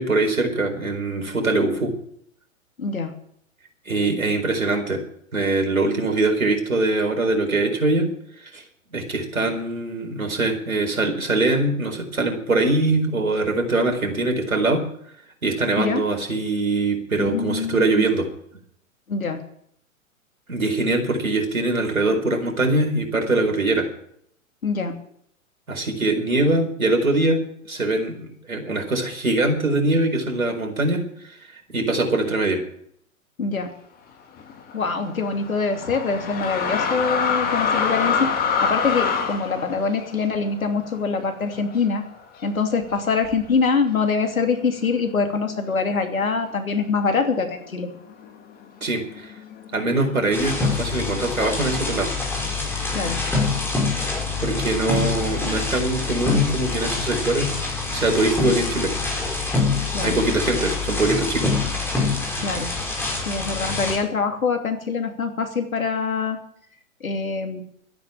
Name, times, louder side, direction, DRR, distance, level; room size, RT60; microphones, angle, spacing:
voice 1, 0.0-1.9 3.9-5.0 5.3-8.1 8.5-8.6 8.9-14.8 15.4-18.3 20.5-23.9 25.7-27.4 27.7-31.4 31.7-32.6 48.8-49.3 49.7-52.1 54.4-58.9 60.0-61.5, right 2 dB, 80° right, 4 dB, 4.5 m, -22 dB
voice 2, 2.8-3.1 15.8-16.0 17.2-18.0 19.1-19.4 24.6-25.0 33.4-33.7 34.7-42.0 42.4-47.9 52.9-53.2 59.9-60.2 62.4-62.7 63.2-66.4 67.0-67.6, left 4 dB, 75° left, 5 dB, 2.9 m, -24 dB
sound 1, 34.4-42.0 42.3-42.5 43.2-43.7 44.4-44.5 44.8-46.5 46.9-47.4 47.7-51.4 52.2-53.1, left 6 dB, 20° left, 2.4 m, -27 dB
sound 2, 50.3-64.0, left 3 dB, 5° left, 4.9 m, -25 dB
13.0 x 10.0 x 8.8 m, 0.69 s
figure-of-eight pair, 115°, 41 cm